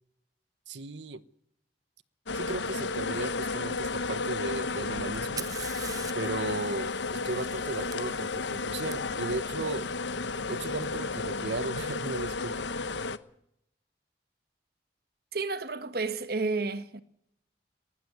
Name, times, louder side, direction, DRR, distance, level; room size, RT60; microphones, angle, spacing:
voice 1, 0.7-1.2 2.3-5.5 6.1-9.9 10.5-12.7, right 2 dB, 75° right, 1.1 m, -36 dB
sound 1, 2.3-13.2, left 3 dB, 80° left, 1.0 m, -33 dB
Fire, 5.1-8.9 10.8-10.9 11.8-12.2, right 6 dB, 20° right, 1.2 m, -43 dB
voice 2, 15.3-17.0, right 3 dB, 55° right, 1.3 m, -31 dB
19.0 x 15.0 x 9.4 m
head